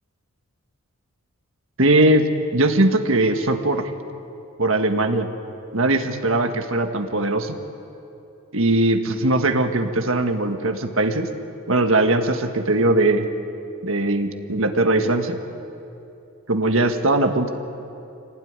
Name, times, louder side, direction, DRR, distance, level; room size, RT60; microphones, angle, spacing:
voice 1, 1.8-3.9 4.6-5.3 5.7-7.6 8.5-11.3 11.7-13.3 13.8-15.4 16.5-17.5, right 2 dB, 65° right, 6 dB, 1.7 m, -20 dB
25.0 x 18.0 x 9.7 m, 2.8 s
head